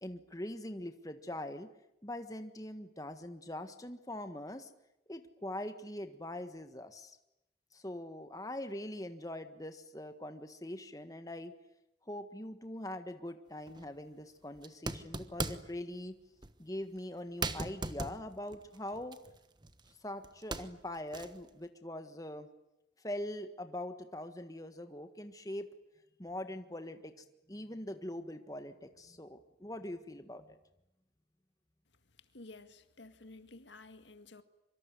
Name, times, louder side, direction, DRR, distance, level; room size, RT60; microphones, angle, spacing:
voice 1, 0.0-1.7 2.0-4.7 5.1-7.2 7.7-11.6 12.0-16.2 16.6-19.2 20.0-22.5 23.0-25.7 26.2-30.6, left 1 dB, 20° left, 8 dB, 1.5 m, -42 dB
sound 1, 13.7-13.9 14.6-15.8 16.4-16.6 17.0-17.1 17.4-19.9 20.2-21.5, right 3 dB, 25° right, 1.2 m, -39 dB
voice 2, 32.2-34.4, left 2 dB, 80° left, 10 dB, 2.0 m, -53 dB
25.0 x 24.5 x 9.6 m, 0.86 s
head